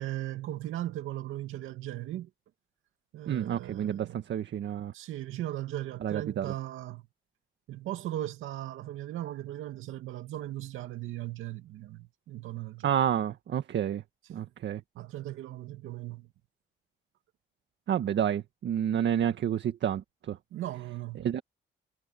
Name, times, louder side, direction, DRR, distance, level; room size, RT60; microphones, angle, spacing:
voice 1, 0.0-2.3 3.1-4.2 4.9-7.1 7.7-12.9 14.3-14.4 14.9-16.3 20.5-21.3, right 14 dB, 85° right, 2.5 m, -38 dB
voice 2, 3.3-4.9 6.0-6.5 12.8-14.0 14.3-14.8 17.9-20.4 21.2-21.4, right 9 dB, 65° right, 1.8 m, -29 dB
cardioid pair, 90°, 20 cm